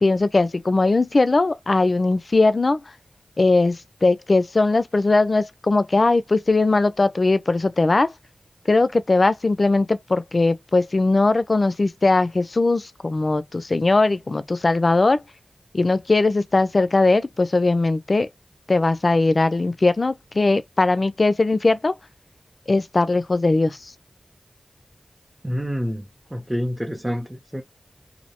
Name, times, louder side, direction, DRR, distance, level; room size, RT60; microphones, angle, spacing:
voice 1, 0.0-2.8 3.4-8.1 8.7-15.2 15.7-18.3 18.7-21.9 22.7-23.8, left 3 dB, 55° left, 0.4 m, -19 dB
voice 2, 25.4-27.6, equal, 10° right, 0.5 m, -28 dB
2.5 x 2.0 x 2.8 m
wide cardioid pair, 60°, 0 cm